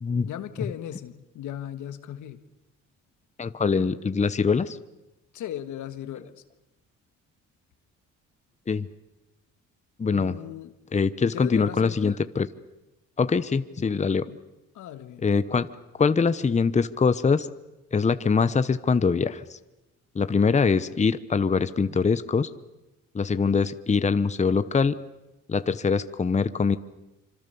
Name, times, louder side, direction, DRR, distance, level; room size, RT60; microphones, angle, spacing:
voice 1, 0.2-2.4 5.3-6.4 10.1-10.7 11.3-12.2 14.3-14.4 14.7-15.3, left 11 dB, 80° left, 11 dB, 1.6 m, -37 dB
voice 2, 3.4-4.8 8.7-8.9 10.0-10.3 10.9-12.5 13.2-14.3 15.2-15.7 16.0-17.5 17.9-19.6 20.1-22.5 23.1-25.0 25.5-26.8, left 5 dB, 25° left, 13 dB, 0.9 m, -23 dB
26.0 x 25.0 x 7.0 m, 1.0 s
cardioid pair, 90°, 30 cm